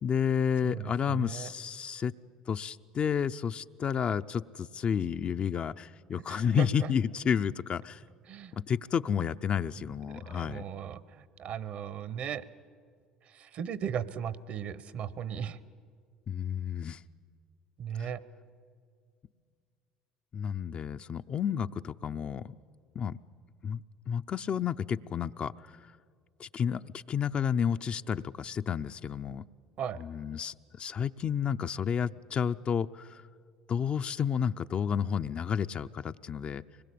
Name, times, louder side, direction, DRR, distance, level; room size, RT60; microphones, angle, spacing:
voice 1, 0.0-2.1 2.5-8.0 8.6-10.6 16.3-17.0 18.0-18.1 20.3-22.5 22.9-23.2 23.6-25.5 26.4-29.4 30.0-33.2 33.7-36.6, left 7 dB, 45° left, 10 dB, 0.6 m, -31 dB
voice 2, 0.6-1.5 6.3-6.9 8.3-8.6 10.1-12.4 13.3-15.6 17.8-18.2 29.8-30.0, right 8 dB, 60° right, 18 dB, 1.0 m, -37 dB
24.5 x 20.5 x 8.5 m, 2.1 s
hypercardioid pair, 75°, 3 cm